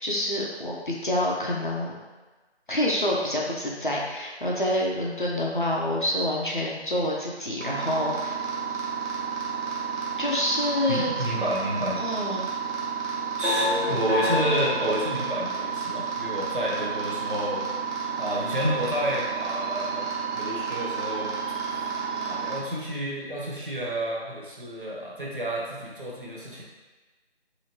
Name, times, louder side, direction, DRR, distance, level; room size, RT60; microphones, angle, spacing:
voice 1, 0.0-2.0 2.7-8.4 10.2-11.1 12.0-12.5, left 1 dB, 50° left, -3 dB, 0.5 m, -27 dB
sound 1, 7.6-22.6, right 4 dB, 90° right, 1.1 m, -30 dB
voice 2, 10.9-12.0 13.4-17.6 18.2-20.1 20.3-21.4 21.7-26.6, equal, 50° right, -5 dB, 0.7 m, -30 dB
3.0 x 2.7 x 2.8 m, 1.3 s
figure-of-eight pair, 170°, 34 cm